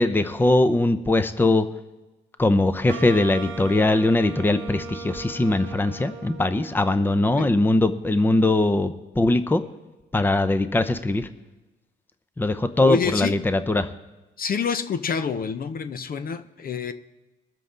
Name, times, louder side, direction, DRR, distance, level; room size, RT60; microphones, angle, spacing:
voice 1, 0.0-1.7 2.4-9.6 10.1-11.3 12.4-13.9, left 2 dB, 10° left, 11 dB, 0.6 m, -21 dB
Wind instrument woodwind instrument, 2.9-7.9, right 4 dB, 85° right, 1.2 m, -38 dB
voice 2, 12.8-13.4 14.4-16.9, left 6 dB, 45° left, 11 dB, 0.7 m, -27 dB
21.5 x 7.6 x 3.8 m, 1.1 s
cardioid pair, 90°, 20 cm